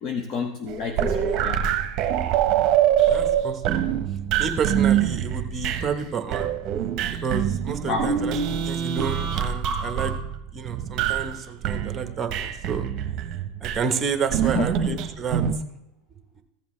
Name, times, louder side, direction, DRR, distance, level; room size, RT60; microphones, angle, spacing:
voice 1, 0.0-1.6 7.9-8.1 14.5-15.0, left 5 dB, 45° left, 5 dB, 0.8 m, -29 dB
sound 1, 0.7-6.0 6.3-11.4 11.6-13.8 14.3-15.5, right 9 dB, 45° right, 0.9 m, -24 dB
voice 2, 3.1-3.9 4.4-6.5 7.2-8.4 8.6-10.1 10.5-12.9 13.6-15.4, right 6 dB, 25° right, 7 dB, 1.1 m, -30 dB
15.0 x 7.1 x 3.2 m, 0.84 s
supercardioid pair, 125°, 0 cm